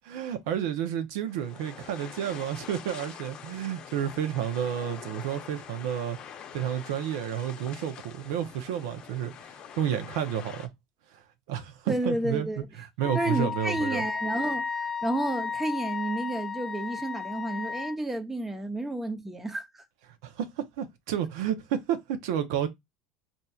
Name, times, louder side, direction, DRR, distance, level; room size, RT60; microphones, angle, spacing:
voice 1, 0.0-6.2 6.5-9.3 9.8-10.7 11.1-11.2 11.5-14.0 20.2-22.7, right 10 dB, 75° right, 0.7 m, -31 dB
sound 1, 1.3-10.7, left 8 dB, 45° left, 0.7 m, -45 dB
voice 2, 11.9-12.7 13.1-19.8, right 1 dB, 10° right, 0.7 m, -31 dB
Wind instrument woodwind instrument, 13.0-18.0, left 5 dB, 20° left, 0.3 m, -33 dB
4.1 x 2.7 x 2.4 m
supercardioid pair, 95°, 2 cm